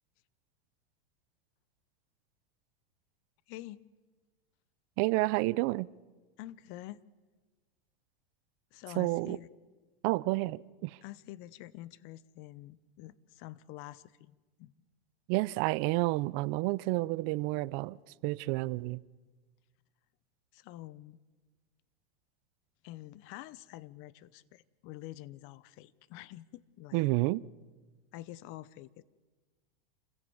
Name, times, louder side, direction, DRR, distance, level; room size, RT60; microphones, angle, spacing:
voice 1, 3.5-3.8 6.4-7.0 8.7-9.5 11.0-14.7 20.5-21.2 22.8-27.1 28.1-29.0, left 16 dB, 45° left, 0.8 m, -47 dB
voice 2, 5.0-5.9 9.0-9.4 10.0-11.0 15.3-19.0 26.9-27.4, right 21 dB, 45° right, 0.6 m, -30 dB
27.5 x 16.0 x 7.2 m
hypercardioid pair, 125°, 30 cm